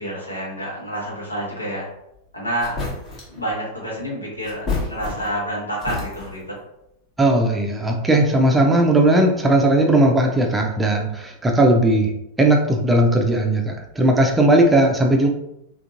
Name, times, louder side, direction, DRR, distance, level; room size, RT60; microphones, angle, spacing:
voice 1, 0.0-1.9 2.3-2.8 3.3-6.5, right 1 dB, 80° left, -4 dB, 1.2 m, -28 dB
sound 1, 2.1-2.2 2.6-3.4 4.4-5.5 5.8-6.5, left 3 dB, 30° left, 1.0 m, -29 dB
voice 2, 7.2-12.1 12.4-15.3, right 1 dB, 10° right, 1 dB, 0.5 m, -17 dB
3.7 x 2.6 x 2.5 m, 0.82 s
figure-of-eight pair, 90°, 0 cm